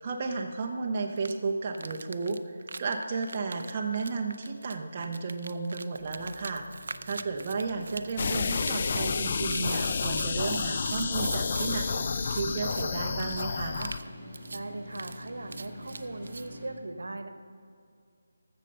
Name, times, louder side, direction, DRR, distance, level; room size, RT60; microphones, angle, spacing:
voice 1, 0.0-2.5 2.8-6.6 7.0-12.0 12.3-13.9, right 4 dB, 30° right, 1 dB, 0.7 m, -33 dB
sound 1, 1.2-1.3 1.7-11.8 12.1-12.8 13.2-13.4 13.7-14.1 14.3-14.6 14.9-16.5, right 3 dB, 60° right, 0.5 m, -42 dB
sound 2, 6.0-16.7, left 1 dB, ahead, 2.2 m, -46 dB
sound 3, 8.2-14.0, left 5 dB, 35° left, 0.3 m, -30 dB
voice 2, 14.5-17.3, right 2 dB, 85° right, 8 dB, 1.1 m, -39 dB
14.5 x 6.6 x 5.4 m, 2.3 s
figure-of-eight pair, 170°, 0 cm